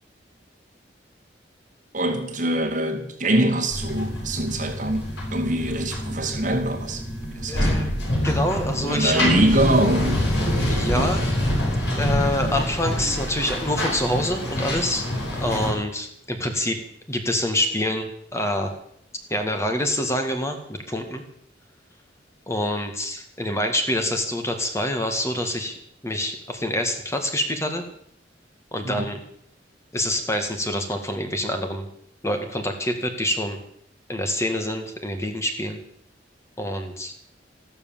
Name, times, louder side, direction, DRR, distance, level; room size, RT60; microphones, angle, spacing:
voice 1, 1.9-7.9 8.8-10.3 10.9-11.1 28.8-29.0, right 1 dB, 45° right, 3 dB, 2.4 m, -24 dB
sound 1, 3.7-15.7, left 1 dB, 70° left, 7.9 m, -26 dB
voice 2, 7.5-7.9 8.2-9.2 10.7-11.3 12.0-16.8 17.1-18.7 19.3-21.2 22.5-25.8 26.0-27.8 28.7-29.2 29.9-31.9 32.2-33.6 34.1-35.8 36.6-37.1, left 1 dB, 15° left, 6 dB, 1.8 m, -26 dB
14.0 x 13.0 x 7.4 m, 0.68 s
head